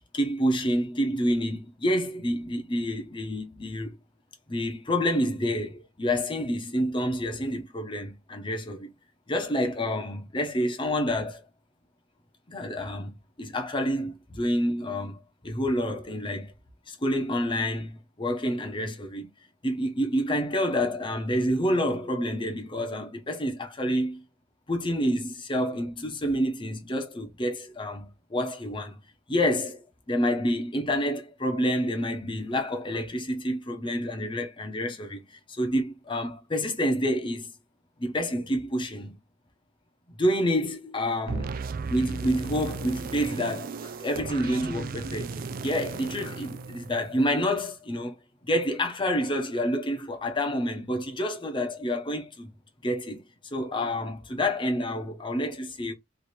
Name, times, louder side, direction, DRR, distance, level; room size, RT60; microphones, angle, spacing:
voice 1, 0.1-4.0 4.5-8.9 9.3-11.4 12.5-16.5 16.9-19.3 19.6-24.2 24.7-29.0 29.3-37.5 38.0-39.2 40.1-41.6 41.9-48.1 48.4-52.5 52.8-53.2 53.5-55.9, equal, 25° left, 0.9 m, -28 dB
sound 1, 41.3-47.4, right 4 dB, 45° right, 0.4 m, -35 dB
3.3 x 2.9 x 4.3 m
head